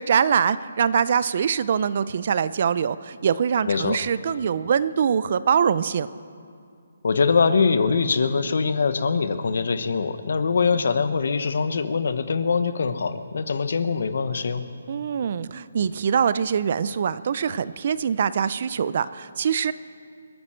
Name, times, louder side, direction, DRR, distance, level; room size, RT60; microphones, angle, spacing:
voice 1, 0.0-6.1 14.9-19.7, right 7 dB, 35° right, 16 dB, 0.4 m, -23 dB
voice 2, 3.7-4.0 7.0-14.6, left 5 dB, 55° left, 11 dB, 1.0 m, -23 dB
28.5 x 9.6 x 4.4 m, 2.4 s
hypercardioid pair, 175°, 0 cm